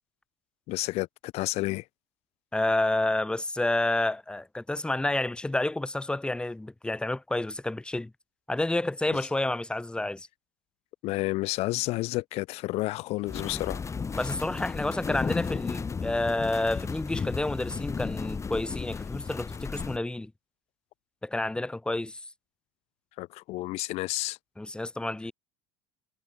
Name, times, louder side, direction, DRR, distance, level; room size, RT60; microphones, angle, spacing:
voice 1, 0.7-1.9 11.0-13.8 23.2-24.4, left 20 dB, 60° left, 2.0 m, -30 dB
voice 2, 2.5-8.1 8.5-10.3 14.2-20.3 21.2-22.2 24.6-25.3, left 2 dB, 5° left, 2.5 m, -29 dB
sound 1, 13.3-20.0, left 5 dB, 25° left, 5.5 m, -34 dB
hypercardioid pair, 90°, 12 cm